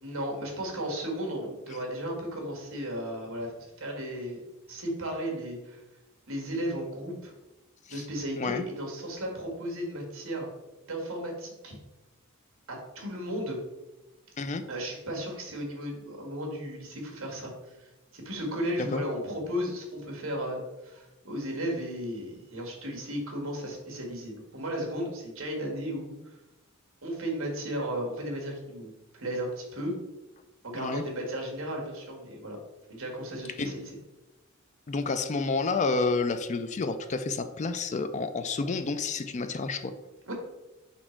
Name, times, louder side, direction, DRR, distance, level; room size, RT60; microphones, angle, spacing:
voice 1, 0.0-4.4 4.7-5.8 6.3-7.3 7.9-10.5 10.9-11.8 12.7-13.6 14.7-26.1 27.0-29.9 30.6-32.6 32.9-34.0 40.3-40.4, equal, 65° right, 0 dB, 1.7 m, -35 dB
voice 2, 8.4-8.7 14.4-14.6 18.8-19.0 30.7-31.0 33.6-33.7 34.9-39.9, left 3 dB, 35° left, 9 dB, 0.3 m, -30 dB
5.0 x 4.3 x 4.4 m, 1.0 s
head